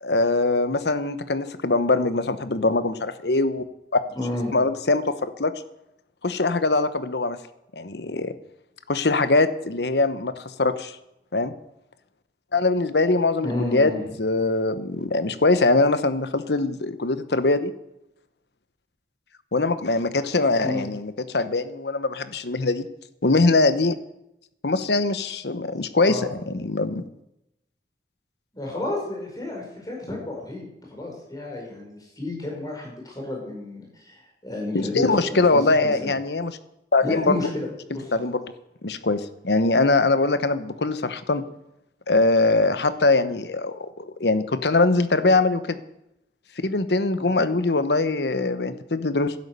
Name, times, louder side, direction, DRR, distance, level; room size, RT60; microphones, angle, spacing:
voice 1, 0.0-3.6 4.5-5.5 6.2-7.4 7.8-8.3 8.9-10.9 11.3-11.5 12.5-13.9 14.2-17.7 19.5-22.9 23.2-23.9 24.6-27.0 34.7-36.6 36.9-37.4 38.1-38.4 38.8-41.4 42.1-45.8 46.6-49.3, left 3 dB, 70° left, 12 dB, 1.1 m, -22 dB
voice 2, 4.1-4.5 13.4-14.0 20.6-20.8 26.0-26.3 28.5-30.6 30.9-36.1 37.0-38.1 47.1-47.3, left 2 dB, 20° left, -1 dB, 5.3 m, -31 dB
12.0 x 10.5 x 8.2 m, 0.84 s
head